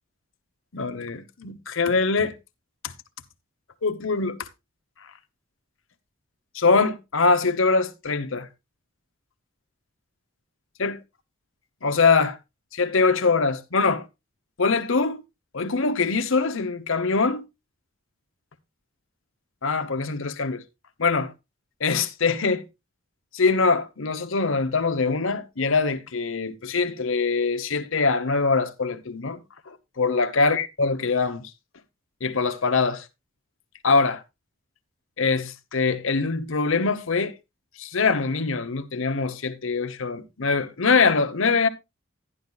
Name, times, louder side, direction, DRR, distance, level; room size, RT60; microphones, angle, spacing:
voice 1, 0.7-2.3 2.8-2.9 3.8-4.5 6.5-8.5 10.8-11.0 11.8-12.4 12.7-14.0 14.6-15.2 15.5-17.4 19.6-20.6 21.0-21.3 21.8-22.6 23.3-29.4 29.7-31.5 32.2-33.1 33.8-34.2 35.2-37.4 37.8-41.7, left 4 dB, 60° left, 0.9 m, -23 dB
12.0 x 10.5 x 2.3 m
head